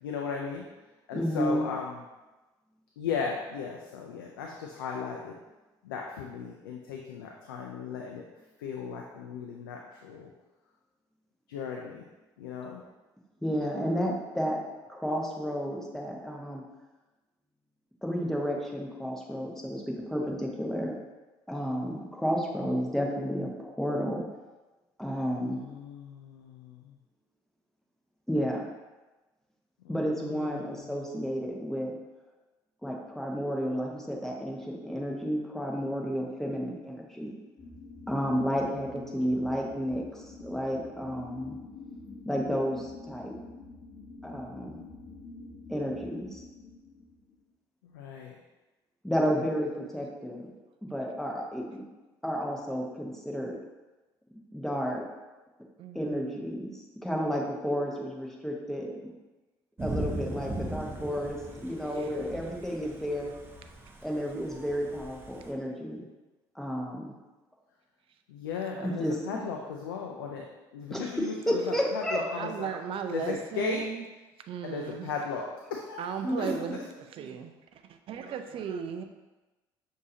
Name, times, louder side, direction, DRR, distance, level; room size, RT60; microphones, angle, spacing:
voice 1, 0.0-0.6 1.1-2.0 3.0-5.3 5.9-8.2 8.6-10.3 11.5-12.0 12.4-12.8 25.5-26.8 29.9-31.0 47.9-48.3 68.3-70.4 70.7-72.7 73.1-73.8 74.6-75.4 75.7-76.5, left 6 dB, 85° left, 0 dB, 0.4 m, -36 dB
voice 2, 1.1-1.7 13.4-14.6 14.9-16.6 18.0-20.9 21.5-24.2 25.0-25.6 28.3-28.7 29.9-31.9 32.8-37.3 38.1-41.6 42.2-43.3 44.2-44.8 45.7-46.4 49.0-50.5 50.8-51.8 52.2-53.6 54.5-55.1 55.9-58.9 59.8-63.3 64.0-66.0 66.5-67.1 68.8-69.4 70.9-72.2 76.2-76.6, equal, 5° left, -1 dB, 1.1 m, -31 dB
sound 1, 37.6-47.4, left 3 dB, 40° left, 0.7 m, -47 dB
voice 3, 55.8-56.4 61.9-62.1 68.7-68.9 72.3-74.1 74.5-75.1 76.0-76.8 77.2-77.5 78.1-79.0, right 8 dB, 50° right, 7 dB, 0.5 m, -36 dB
Thunder / Rain, 59.8-65.5, right 1 dB, 20° right, 0.7 m, -39 dB
6.1 x 2.7 x 2.8 m, 1.1 s
hypercardioid pair, 60°, 11 cm